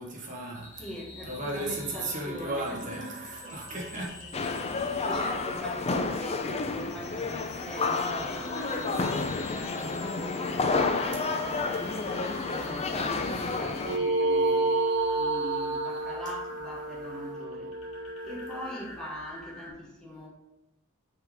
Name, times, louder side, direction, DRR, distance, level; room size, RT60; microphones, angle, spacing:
voice 1, 0.0-0.8 1.2-4.1, right 1 dB, 35° right, -3 dB, 1.3 m, -35 dB
sound 1, 0.5-19.7, left 2 dB, 70° left, 2.1 m, -46 dB
voice 2, 0.8-3.7 4.2-4.4 4.7-14.7 15.2-17.7 18.2-20.3, equal, 5° left, -5 dB, 1.3 m, -43 dB
sound 2, 4.3-14.0, left 3 dB, 30° left, 0.5 m, -30 dB
sound 3, 13.8-18.7, right 2 dB, 85° right, 0.4 m, -29 dB
5.5 x 3.8 x 4.7 m, 0.92 s
head